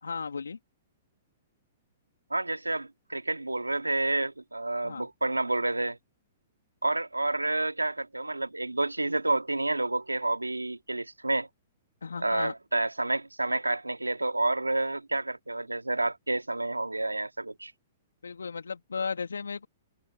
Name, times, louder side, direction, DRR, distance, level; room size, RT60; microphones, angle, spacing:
voice 1, 0.0-0.6 4.8-5.1 12.0-12.5 18.2-19.7, left 5 dB, 75° left, 2.9 m, -35 dB
voice 2, 2.3-6.0 6.8-11.5 12.2-17.7, right 2 dB, 90° right, 2.3 m, -29 dB
figure-of-eight pair, 110°, 0 cm